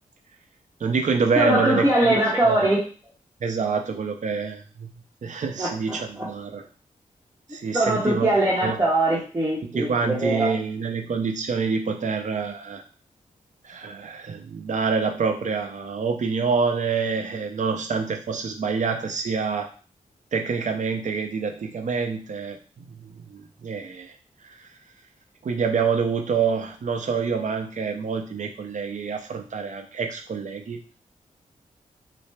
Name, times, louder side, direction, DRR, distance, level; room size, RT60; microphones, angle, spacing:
voice 1, 0.8-1.8 2.1-2.2 2.4-2.6 3.4-4.9 5.2-6.6 7.5-8.3 8.6-8.8 9.7-12.8 13.7-19.7 20.3-22.9 23.3-24.1 25.4-31.0, right 5 dB, 60° right, 5 dB, 0.5 m, -26 dB
voice 2, 1.3-2.8 5.6-6.3 7.7-10.6, right 1 dB, 20° right, -6 dB, 0.9 m, -22 dB
3.2 x 2.0 x 3.2 m, 0.38 s
cardioid pair, 70°, 14 cm